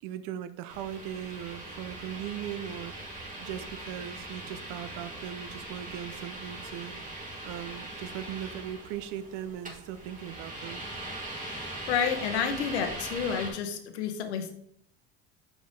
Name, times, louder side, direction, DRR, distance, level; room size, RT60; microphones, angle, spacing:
voice 1, 0.0-10.8, right 10 dB, 70° right, 12 dB, 0.6 m, -39 dB
sound 1, 0.7-13.5, right 1 dB, 25° right, 2.1 m, -41 dB
voice 2, 11.4-14.5, left 7 dB, 90° left, 7 dB, 0.9 m, -30 dB
5.3 x 5.0 x 3.8 m, 0.69 s
hypercardioid pair, 75°, 32 cm